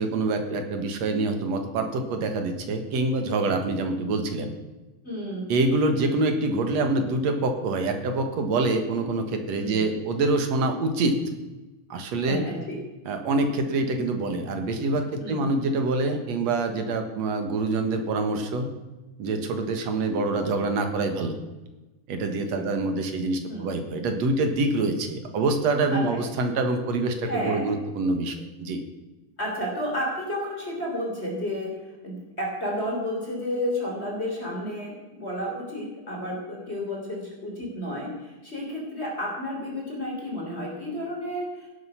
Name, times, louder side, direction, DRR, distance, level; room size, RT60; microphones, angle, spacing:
voice 1, 0.0-4.5 5.5-11.2 11.9-12.5 13.1-18.7 19.2-21.4 22.1-28.8, right 2 dB, 65° right, 6 dB, 2.7 m, -26 dB
voice 2, 5.0-5.5 9.6-9.8 12.1-12.8 15.2-15.4 22.5-22.6 23.5-23.7 25.9-26.0 27.2-27.6 29.4-41.7, equal, 20° left, -2 dB, 3.6 m, -31 dB
17.0 x 10.5 x 5.7 m, 1.1 s
omnidirectional pair, 3.5 m